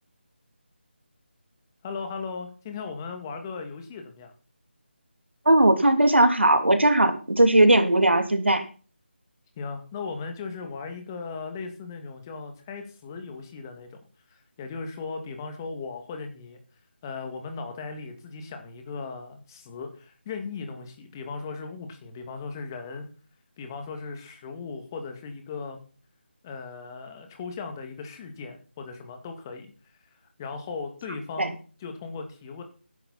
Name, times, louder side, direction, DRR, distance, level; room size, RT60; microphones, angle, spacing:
voice 1, 1.8-4.3 9.6-14.0 14.3-16.6 17.0-23.0 23.6-25.8 26.4-29.7 30.4-32.6, left 4 dB, 20° left, 5 dB, 2.3 m, -37 dB
voice 2, 5.4-8.6 31.4-31.5, right 1 dB, 80° right, 7 dB, 2.9 m, -19 dB
14.5 x 10.5 x 4.3 m, 0.38 s
figure-of-eight pair, 160°, 6 cm